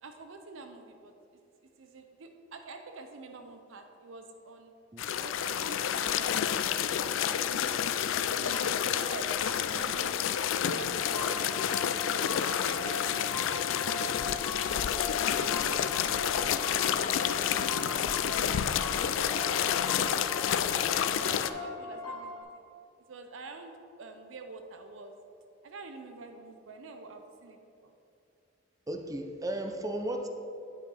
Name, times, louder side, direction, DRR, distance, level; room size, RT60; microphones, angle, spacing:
voice 1, 0.0-1.4 1.8-4.7 5.2-6.8 7.6-7.9 8.3-10.2 10.6-11.6 12.2-13.4 13.7-15.8 16.2-18.3 18.8-20.2 20.7-22.3 23.1-25.1 25.6-27.9, right 3 dB, 90° right, 5 dB, 0.6 m, -46 dB
sound 1, 5.0-21.5, left 9 dB, 80° left, 0.3 m, -29 dB
sound 2, 11.0-22.4, left 3 dB, 20° left, 1.9 m, -40 dB
voice 2, 28.9-30.3, right 1 dB, 20° right, 5 dB, 0.5 m, -34 dB
8.9 x 5.5 x 4.1 m, 2.6 s
head